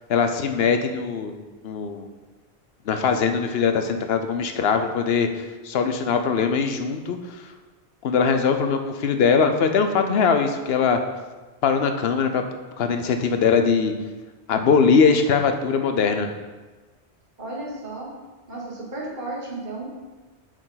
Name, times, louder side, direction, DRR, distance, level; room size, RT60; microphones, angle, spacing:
voice 1, 0.1-2.1 2.9-7.4 8.0-11.0 11.6-12.4 12.8-13.9 14.5-16.3, left 5 dB, 70° left, 7 dB, 0.8 m, -21 dB
voice 2, 17.4-18.1 18.5-19.9, right 2 dB, 45° right, -5 dB, 1.9 m, -33 dB
7.5 x 5.0 x 3.9 m, 1.3 s
omnidirectional pair, 1.1 m